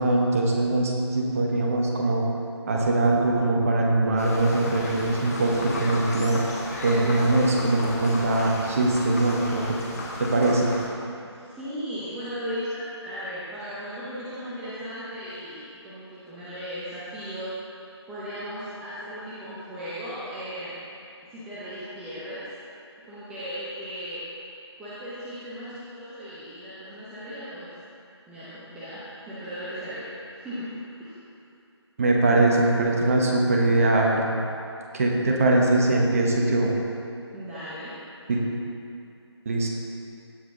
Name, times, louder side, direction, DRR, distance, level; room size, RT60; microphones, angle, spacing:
voice 1, 0.0-2.2 2.7-6.4 6.8-9.8 10.2-10.7 32.0-34.2 34.9-36.7 38.3-38.4 39.4-39.7, right 2 dB, 30° right, -1 dB, 1.2 m, -22 dB
sound 1, 4.2-10.9, left 2 dB, 35° left, 1.2 m, -35 dB
voice 2, 11.2-17.5 18.1-20.8 21.3-22.5 23.0-24.2 24.8-27.7 28.3-30.7 31.0-31.1 37.3-37.9, equal, 5° right, -12 dB, 0.6 m, -36 dB
16.0 x 5.9 x 3.5 m, 2.5 s
figure-of-eight pair, 155°, 15 cm